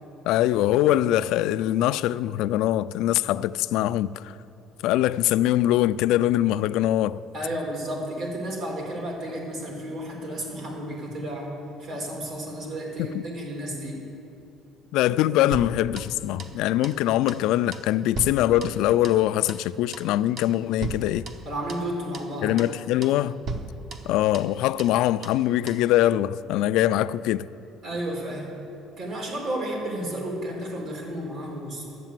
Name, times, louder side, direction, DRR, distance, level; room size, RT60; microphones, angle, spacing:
voice 1, 0.2-4.3 4.8-7.2 13.0-13.2 14.9-21.3 22.4-23.4 24.0-27.5, left 13 dB, 75° left, 0.3 m, -23 dB
voice 2, 7.3-11.5 11.8-14.1 21.5-22.6 27.8-28.5 29.0-32.0, right 1 dB, 55° right, 2.6 m, -32 dB
sound 1, 15.5-16.6 16.8-17.0 17.3-17.5 17.7-19.2 19.5-19.7 19.9-20.1 20.4-20.6 20.8-21.9 22.1-22.3 22.6-22.8 23.0-23.2 23.5-24.5 24.8-25.0 25.2-25.4 25.7-25.9, right 3 dB, 40° right, 0.9 m, -36 dB
12.0 x 8.1 x 7.6 m
cardioid pair, 145°, 0 cm